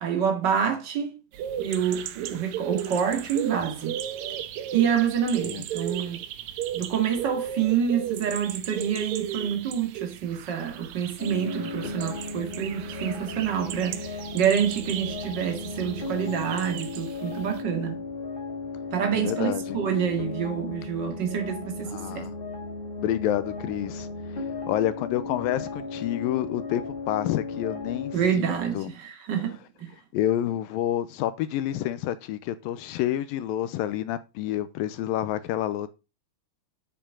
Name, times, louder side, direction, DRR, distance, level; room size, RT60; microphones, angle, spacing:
voice 1, 0.0-1.1 1.6-4.0 4.7-6.2 6.7-14.1 14.3-18.0 18.9-22.3 28.1-29.9, right 8 dB, 35° right, 2.0 m, -27 dB
sound 1, 1.3-17.6, right 10 dB, 75° right, 1.7 m, -36 dB
sound 2, 11.2-28.1, left 3 dB, 15° left, 2.1 m, -36 dB
voice 2, 19.1-19.8 21.9-22.3 23.0-24.1 24.7-28.9 30.1-35.9, left 12 dB, 80° left, 2.3 m, -28 dB
10.0 x 6.9 x 3.7 m
omnidirectional pair, 4.3 m